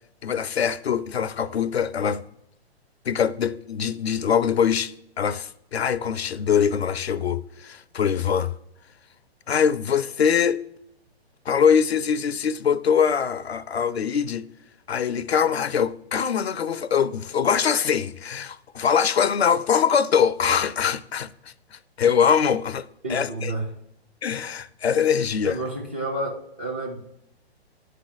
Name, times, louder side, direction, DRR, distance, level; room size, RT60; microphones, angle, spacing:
voice 1, 0.2-2.2 3.1-8.5 9.5-10.6 11.5-14.5 14.9-22.8 23.1-23.5 24.2-25.6, left 7 dB, 70° left, 0.5 m, -23 dB
voice 2, 23.0-23.7 25.4-27.0, right 2 dB, 10° right, 0.3 m, -30 dB
9.9 x 3.3 x 5.6 m
figure-of-eight pair, 120°, 32 cm